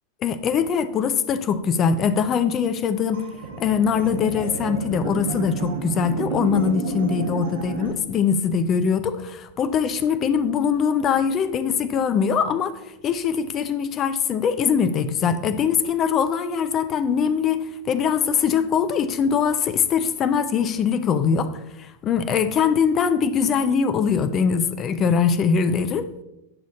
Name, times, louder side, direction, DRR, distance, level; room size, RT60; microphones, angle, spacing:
voice 1, 0.2-3.2 3.6-26.2, left 6 dB, 30° left, 0.7 m, -22 dB
sound 1, 3.1-7.9, right 4 dB, 60° right, 1.4 m, -30 dB
10.0 x 6.2 x 4.0 m
figure-of-eight pair, 90°, 0 cm